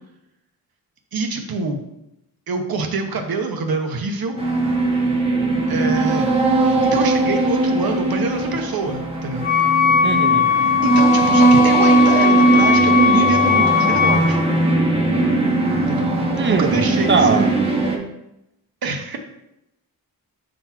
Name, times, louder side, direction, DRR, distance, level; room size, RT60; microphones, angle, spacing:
voice 1, 1.1-1.8 2.5-4.4 5.7-6.3 6.5-9.5 10.5-14.4 15.9-16.1 16.4-17.4 18.8-19.2, right 3 dB, 70° right, 5 dB, 0.9 m, -25 dB
sound 1, 4.4-18.0, right 2 dB, 15° right, 0.9 m, -19 dB
Wind instrument woodwind instrument, 9.4-14.4, left 7 dB, 25° left, 0.5 m, -18 dB
voice 2, 10.0-10.5 16.3-17.5, right 4 dB, 30° right, 9 dB, 0.4 m, -20 dB
6.0 x 4.0 x 4.5 m, 0.86 s
wide cardioid pair, 170°, 38 cm